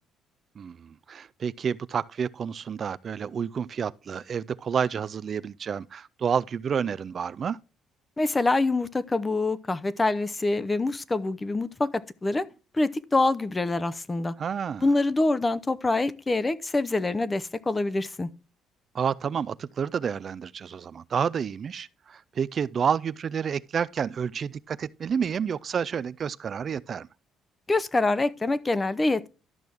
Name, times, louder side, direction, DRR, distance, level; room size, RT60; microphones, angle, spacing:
voice 1, 0.6-7.6 14.4-14.9 18.9-27.1, right 7 dB, 45° right, 0.3 m, -29 dB
voice 2, 8.2-12.5 12.8-14.3 14.8-18.3 27.7-29.3, left 2 dB, 20° left, 0.7 m, -25 dB
12.5 x 6.1 x 3.4 m
cardioid pair, 110°, 0 cm